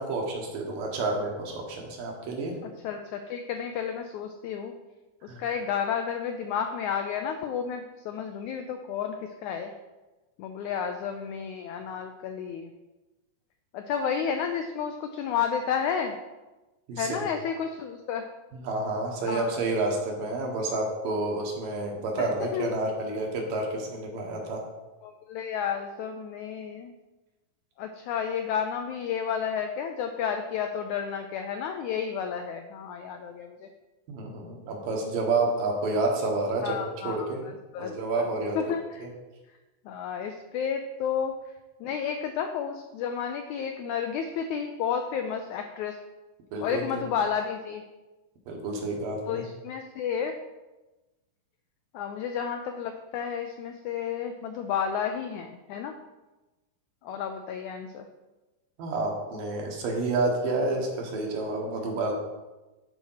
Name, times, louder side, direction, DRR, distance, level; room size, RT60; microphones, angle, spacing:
voice 1, 0.0-2.5 5.3-5.4 16.9-17.3 18.5-24.6 34.1-37.4 37.8-38.6 39.0-39.1 46.5-47.0 48.5-49.4 58.8-62.1, right 2 dB, 75° right, 0 dB, 3.1 m, -29 dB
voice 2, 2.6-4.7 5.2-9.7 10.4-12.7 13.7-16.2 17.0-18.3 19.2-19.6 22.2-22.7 25.0-26.9 27.8-33.7 36.6-37.3 37.7-38.3 38.6-39.1 39.9-41.4 41.8-46.0 46.6-47.8 49.3-50.4 51.9-56.0 57.0-58.1, left 7 dB, 85° left, 5 dB, 1.7 m, -31 dB
11.5 x 4.3 x 5.7 m, 1.1 s
omnidirectional pair, 4.0 m